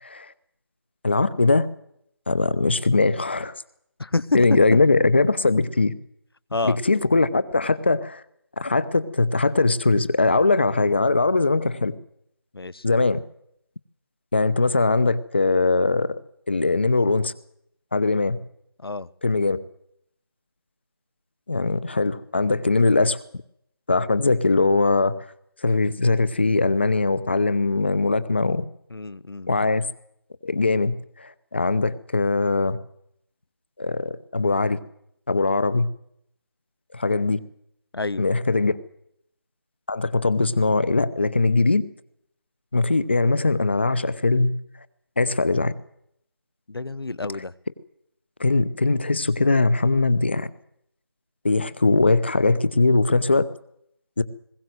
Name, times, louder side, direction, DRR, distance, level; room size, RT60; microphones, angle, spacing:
voice 1, 0.0-0.3 1.0-1.7 2.3-3.5 4.3-5.9 6.6-8.2 8.6-11.9 12.8-13.2 14.3-16.2 16.5-17.3 17.9-18.4 19.2-19.6 21.5-23.2 23.9-25.2 25.6-28.6 29.5-29.8 30.4-32.8 33.8-34.8 35.3-35.9 36.9-37.4 38.2-38.7 39.9-41.8 42.7-44.5 45.2-45.7 48.4-50.5 51.4-53.5 54.2-54.3, left 3 dB, 25° left, 16 dB, 0.9 m, -21 dB
voice 2, 4.0-4.4 6.5-6.8 12.5-12.8 18.8-19.1 28.9-29.5 37.9-38.2 46.7-47.5, left 3 dB, 70° left, 20 dB, 0.9 m, -28 dB
20.5 x 17.0 x 7.9 m, 0.73 s
figure-of-eight pair, 175°, 13 cm